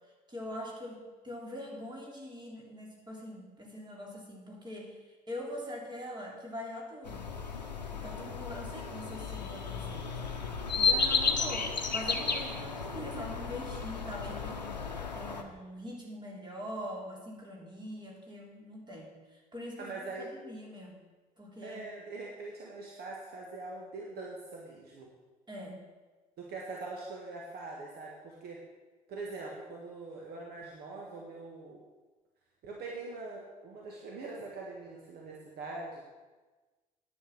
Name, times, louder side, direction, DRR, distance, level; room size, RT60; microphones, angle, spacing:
voice 1, 0.3-5.0 5.3-7.3 7.9-10.2 10.5-14.8 15.1-21.0 21.4-21.8 25.5-25.8, equal, 20° right, -2 dB, 3.4 m, -43 dB
sound 1, 7.0-15.4, left 5 dB, 85° left, 0.8 m, -33 dB
voice 2, 10.8-11.1 19.8-20.3 21.6-25.1 26.4-28.6 29.1-31.8 32.6-36.0, right 3 dB, 50° right, -2 dB, 1.8 m, -43 dB
10.0 x 8.0 x 6.5 m, 1.3 s
figure-of-eight pair, 55°, 21 cm